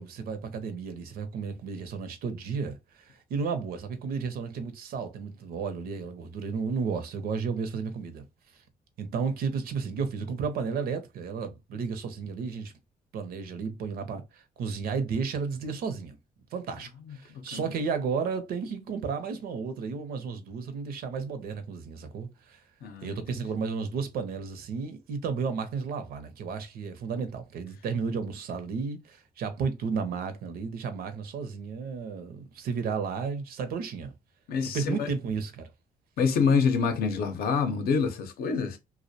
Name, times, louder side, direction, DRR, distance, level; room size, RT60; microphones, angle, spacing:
voice 1, 0.0-8.2 9.0-12.7 13.1-16.2 16.5-22.6 23.0-34.1 34.7-35.7, right 5 dB, 75° right, 0.6 m, -33 dB
voice 2, 22.8-23.2 34.5-35.1 36.2-38.8, left 5 dB, 75° left, 0.6 m, -26 dB
2.4 x 2.1 x 2.6 m
cardioid pair, 110°, 16 cm